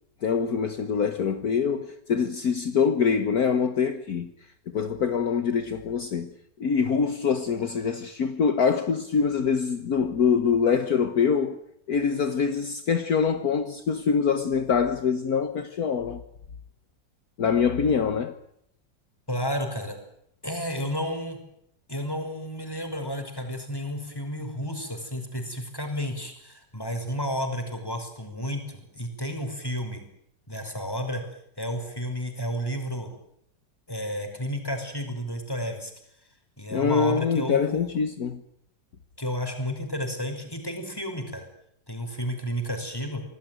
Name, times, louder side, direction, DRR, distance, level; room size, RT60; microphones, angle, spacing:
voice 1, 0.2-4.3 4.7-6.3 6.6-11.6 11.9-16.2 17.4-18.3 36.7-38.4, left 6 dB, 60° left, 1.8 m, -24 dB
voice 2, 19.3-20.0 20.4-21.4 21.9-30.0 30.5-31.2 31.6-33.1 33.9-35.9 36.6-38.0 39.2-41.5 41.9-43.2, equal, 10° left, 5.6 m, -32 dB
26.5 x 18.5 x 9.3 m
omnidirectional pair, 1.9 m